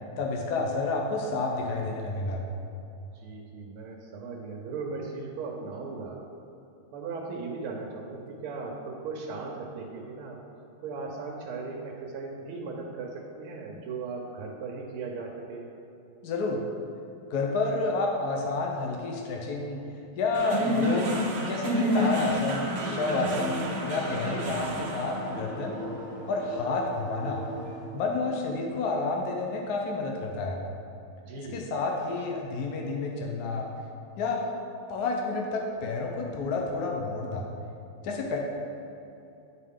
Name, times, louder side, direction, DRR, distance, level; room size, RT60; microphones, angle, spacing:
voice 1, 0.2-2.4 16.2-16.6 17.3-19.8 20.2-25.8 26.3-27.4 27.9-30.6 31.4-33.7 34.2-34.4 34.9-37.4 38.0-38.4, left 3 dB, 70° left, 0 dB, 0.9 m, -30 dB
voice 2, 3.1-6.2 6.9-10.4 10.8-15.7 31.3-31.7, right 4 dB, 80° right, 0 dB, 1.5 m, -37 dB
sound 1, 20.3-28.8, equal, 65° right, 0.7 m, -31 dB
sound 2, 22.6-27.9, left 1 dB, 35° left, 1.7 m, -42 dB
9.2 x 4.2 x 3.6 m, 2.8 s
omnidirectional pair, 2.3 m